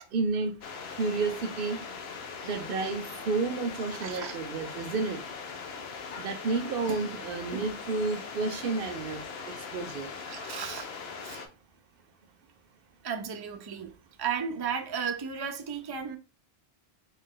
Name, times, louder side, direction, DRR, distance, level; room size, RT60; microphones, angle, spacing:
voice 1, 0.1-0.5 1.0-1.8 2.4-5.2 6.2-9.3 9.7-10.1, right 4 dB, 65° right, 0.8 m, -31 dB
sound 1, 0.6-11.5, left 5 dB, 80° left, 0.9 m, -40 dB
voice 2, 4.0-4.4 10.3-10.9 11.2-11.4 13.0-13.9 14.2-16.2, right 7 dB, 40° right, 0.3 m, -34 dB
3.3 x 2.9 x 3.7 m
omnidirectional pair, 1.0 m